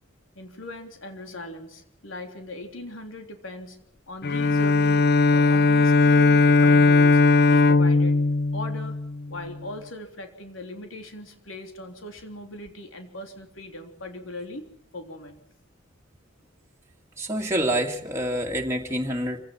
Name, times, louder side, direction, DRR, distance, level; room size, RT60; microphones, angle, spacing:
voice 1, 0.4-3.8 4.1-5.0 5.3-7.2 7.5-8.2 8.5-9.0 9.3-15.4, left 1 dB, 80° left, 5 dB, 3.5 m, -39 dB
Bowed string instrument, 4.2-9.5, left 3 dB, 55° left, 0.7 m, -18 dB
voice 2, 17.2-19.4, right 1 dB, 15° right, 0 dB, 2.2 m, -27 dB
26.5 x 17.5 x 6.0 m, 0.75 s
head